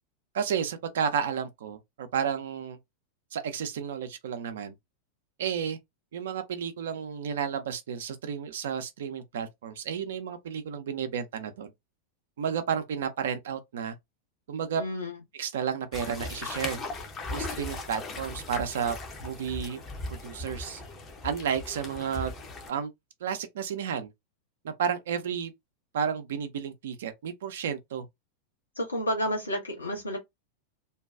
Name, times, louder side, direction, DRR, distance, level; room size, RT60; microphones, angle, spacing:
voice 1, 0.3-2.8 3.3-4.7 5.4-5.8 6.1-11.7 12.4-14.0 14.5-14.8 15.3-16.8 17.3-19.0 19.2-19.8 20.1-20.8 21.2-22.3 22.7-22.9 23.2-24.1 24.6-25.5 25.9-28.1, right 7 dB, 60° right, 0.5 m, -32 dB
voice 2, 14.8-15.1 28.8-30.2, equal, 80° left, 1.1 m, -30 dB
sound 1, 15.9-22.7, left 2 dB, 25° left, 0.6 m, -38 dB
2.6 x 2.2 x 2.3 m
figure-of-eight pair, 90°, 0 cm